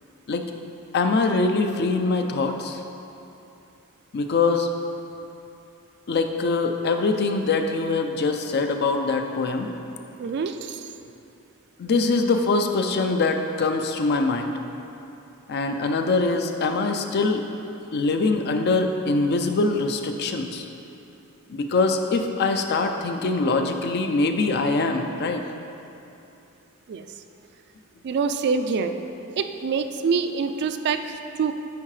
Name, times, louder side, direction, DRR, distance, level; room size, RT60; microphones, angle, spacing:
voice 1, 0.9-2.8 4.1-4.7 6.1-9.7 11.8-14.6 15.5-17.5 17.9-20.7 21.5-25.4, left 3 dB, 50° left, 5 dB, 0.4 m, -23 dB
voice 2, 10.2-10.9 26.9-27.0 28.0-28.9 29.4-31.5, right 5 dB, 50° right, 8 dB, 0.3 m, -25 dB
9.4 x 4.5 x 3.2 m, 2.8 s
head